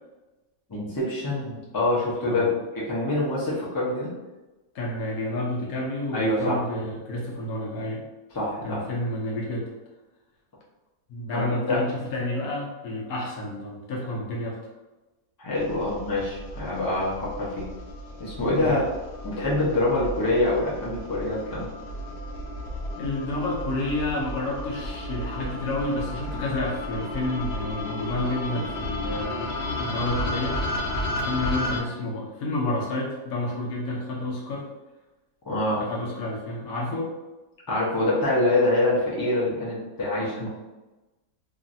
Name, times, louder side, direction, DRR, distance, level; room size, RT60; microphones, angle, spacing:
voice 1, 0.7-4.1 6.1-6.6 8.3-8.8 11.3-11.8 15.4-17.7 18.2-18.8 19.2-21.7 35.4-35.8 37.7-40.5, left 2 dB, 30° left, -7 dB, 0.4 m, -25 dB
voice 2, 4.7-8.0 8.6-9.7 11.1-14.6 18.6-18.8 23.0-30.6 31.2-34.7 35.8-37.1 40.2-40.5, left 1 dB, 70° left, -2 dB, 1.1 m, -30 dB
sound 1, 15.6-31.8, left 1 dB, 90° left, 0.6 m, -33 dB
3.0 x 2.5 x 2.6 m, 1.1 s
omnidirectional pair, 1.8 m